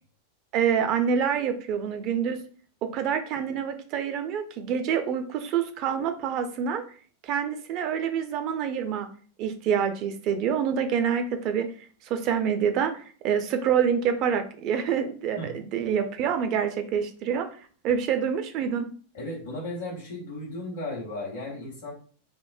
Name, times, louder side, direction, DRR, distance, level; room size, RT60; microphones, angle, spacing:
voice 1, 0.5-2.4 2.8-6.8 7.2-9.1 9.4-11.7 12.0-17.5 17.8-18.9, right 7 dB, 40° right, 7 dB, 0.4 m, -26 dB
voice 2, 19.1-21.9, left 1 dB, 60° left, -3 dB, 0.9 m, -35 dB
3.6 x 2.0 x 2.4 m, 0.44 s
figure-of-eight pair, 90°, 0 cm